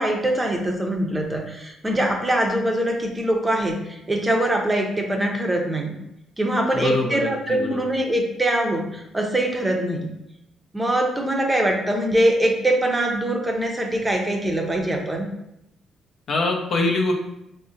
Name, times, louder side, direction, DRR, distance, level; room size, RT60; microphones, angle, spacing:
voice 1, 0.0-6.0 6.4-10.2 10.7-15.3, right 1 dB, 20° right, 2 dB, 0.5 m, -23 dB
voice 2, 6.7-7.9 16.3-17.1, left 2 dB, 65° left, 1 dB, 0.5 m, -24 dB
3.7 x 2.1 x 2.6 m, 0.83 s
cardioid pair, 90°, 0 cm